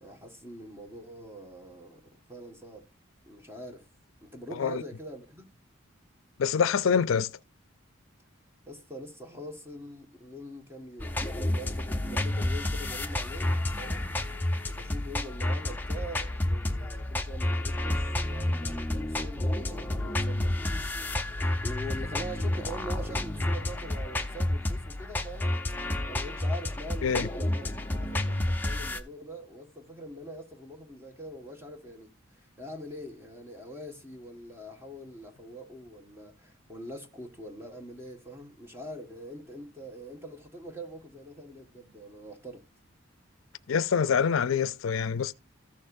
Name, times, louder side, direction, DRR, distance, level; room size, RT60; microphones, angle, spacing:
voice 1, 0.0-2.0 2.3-2.9 3.3-3.9 4.2-5.5 8.7-14.1 14.7-25.6 26.1-27.7 27.9-42.6, equal, 10° right, 1.5 m, -43 dB
voice 2, 4.5-4.8 6.4-7.3 27.0-27.3 43.7-45.3, left 6 dB, 75° left, 0.4 m, -25 dB
sound 1, 11.0-29.0, left 1 dB, 10° left, 0.7 m, -30 dB
14.5 x 6.5 x 2.6 m
head